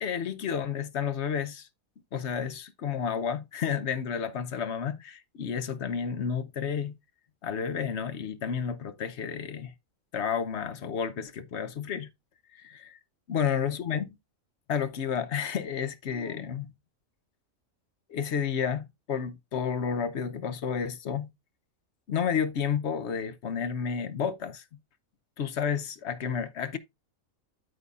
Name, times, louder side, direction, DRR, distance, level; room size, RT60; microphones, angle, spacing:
voice 1, 0.0-1.7 2.1-7.0 7.4-9.7 10.1-12.1 12.5-13.0 13.3-14.2 14.7-16.7 18.1-21.3 22.1-24.6 25.4-26.8, left 7 dB, 60° left, 1.0 m, -31 dB
12.5 x 5.4 x 2.4 m
omnidirectional pair, 1.4 m